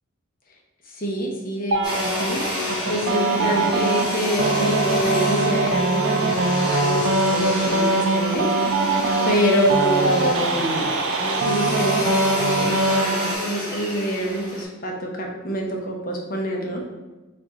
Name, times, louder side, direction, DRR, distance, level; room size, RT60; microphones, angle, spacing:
voice 1, 0.9-2.4 2.9-8.5 9.2-10.9 11.4-16.9, equal, 45° left, -1 dB, 0.8 m, -26 dB
sound 1, 1.7-13.3, right 3 dB, 65° right, 0.4 m, -23 dB
Domestic sounds home sounds, 1.8-14.6, left 1 dB, 20° left, 1.3 m, -28 dB
4.4 x 2.5 x 3.9 m, 1.1 s
head